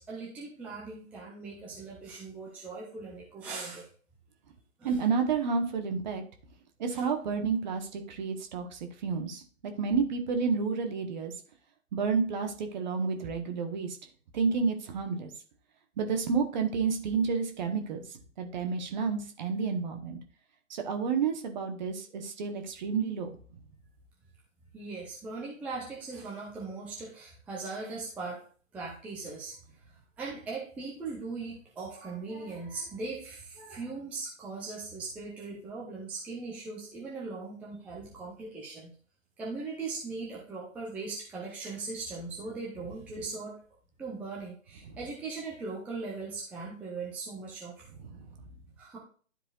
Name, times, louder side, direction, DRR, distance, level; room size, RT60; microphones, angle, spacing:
voice 1, 0.0-3.9 4.8-4.9 6.9-7.0 24.7-28.4 28.7-29.6 30.2-38.9 39.4-43.6 44.0-47.9 48.8-49.0, right 3 dB, 5° right, -5 dB, 0.8 m, -39 dB
voice 2, 4.8-6.2 6.8-11.3 11.9-14.0 14.3-15.3 16.0-18.0 18.4-20.2 20.7-23.3 48.0-48.3, right 5 dB, 35° right, 5 dB, 1.3 m, -30 dB
12.0 x 4.8 x 2.4 m, 0.42 s
figure-of-eight pair, 135°, 40 cm